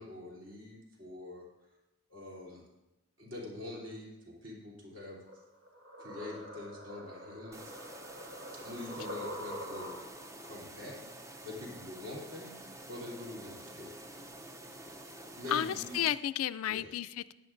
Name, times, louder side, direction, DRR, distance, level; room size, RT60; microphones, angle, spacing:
voice 1, 0.0-1.4 2.1-2.6 3.2-5.2 6.0-7.7 8.6-9.9 10.4-14.0 15.4-16.0 16.7-16.9, left 2 dB, 65° right, -3 dB, 3.0 m, -45 dB
sound 1, 5.3-10.3, equal, 85° right, 3.0 m, -45 dB
sound 2, 7.5-16.1, right 1 dB, 15° right, 0.5 m, -49 dB
voice 2, 15.5-17.3, left 10 dB, 90° left, 14 dB, 0.4 m, -32 dB
15.0 x 10.5 x 2.5 m, 0.95 s
head